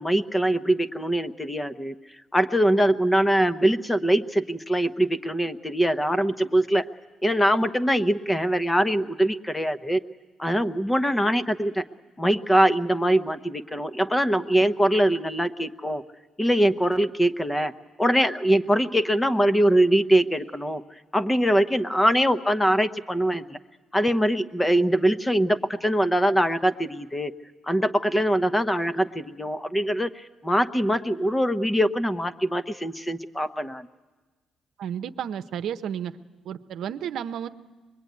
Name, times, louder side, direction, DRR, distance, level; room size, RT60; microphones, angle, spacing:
voice 1, 0.0-1.9 2.3-6.9 7.2-10.0 10.4-11.8 12.2-16.0 16.4-17.7 18.0-20.8 21.1-23.6 23.9-27.3 27.7-33.9, right 1 dB, 10° left, 11 dB, 0.9 m, -23 dB
voice 2, 34.8-36.1 36.4-37.5, right 9 dB, 75° right, 9 dB, 0.8 m, -32 dB
24.0 x 22.0 x 9.5 m, 1.3 s
cardioid pair, 90°, 0 cm